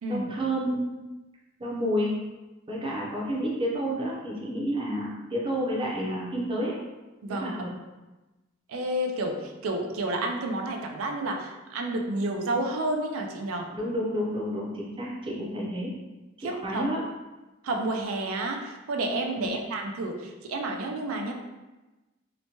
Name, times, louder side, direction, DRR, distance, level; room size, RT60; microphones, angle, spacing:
voice 1, 0.1-0.9 1.6-2.1 2.7-6.7 7.3-7.7 13.7-15.9 16.4-17.0 19.4-19.5, equal, 25° right, -4 dB, 0.5 m, -30 dB
voice 2, 8.7-13.7 15.4-15.5 16.4-16.8 17.6-21.3, right 2 dB, 80° right, 2 dB, 0.4 m, -30 dB
2.9 x 2.1 x 2.8 m, 1.1 s
head